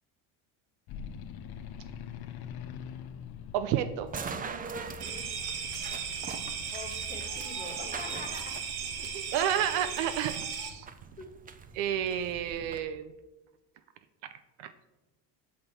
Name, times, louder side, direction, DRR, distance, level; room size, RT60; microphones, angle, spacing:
sound 1, 0.9-10.8, left 7 dB, 55° left, 0.7 m, -46 dB
voice 1, 3.5-4.1 9.3-10.9 11.7-13.1 14.6-14.7, right 10 dB, 75° right, 11 dB, 0.6 m, -30 dB
sound 2, 4.1-12.8, right 5 dB, 20° right, 0.4 m, -43 dB
voice 2, 5.0-5.5 6.7-8.6 11.2-11.3, left 3 dB, 20° left, 2 dB, 1.4 m, -44 dB
sound 3, 5.0-10.7, right 7 dB, 55° right, 1.1 m, -36 dB
6.0 x 5.2 x 4.2 m, 1.1 s
supercardioid pair, 90°, 45 cm